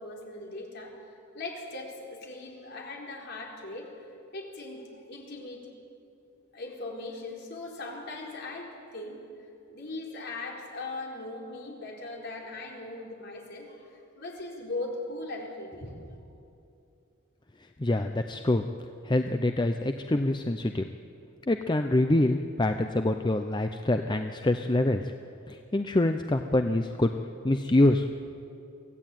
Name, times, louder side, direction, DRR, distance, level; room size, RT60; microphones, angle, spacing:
voice 1, 0.0-3.9 4.3-5.7 6.5-9.2 9.7-16.2, left 2 dB, 55° left, -1 dB, 4.3 m, -39 dB
voice 2, 17.8-18.6 19.0-20.8 21.5-25.0 25.5-27.1 27.4-28.0, left 1 dB, 20° left, 6 dB, 0.6 m, -25 dB
24.0 x 16.0 x 9.1 m, 2.7 s
head